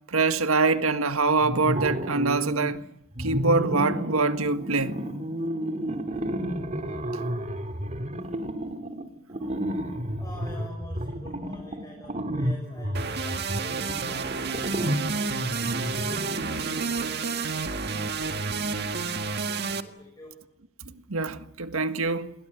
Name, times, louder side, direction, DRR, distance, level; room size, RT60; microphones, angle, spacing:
voice 1, 0.1-2.8 3.2-4.9 21.1-22.3, right 3 dB, 85° right, 1.7 m, -24 dB
sound 1, 1.4-2.8 3.1-17.0, equal, 35° right, 2.4 m, -31 dB
voice 2, 10.2-16.1 16.5-17.0 19.8-20.5, left 1 dB, 15° left, 6.8 m, -47 dB
sound 2, 12.9-19.8, right 4 dB, 50° right, 1.8 m, -30 dB
30.0 x 22.5 x 8.3 m
head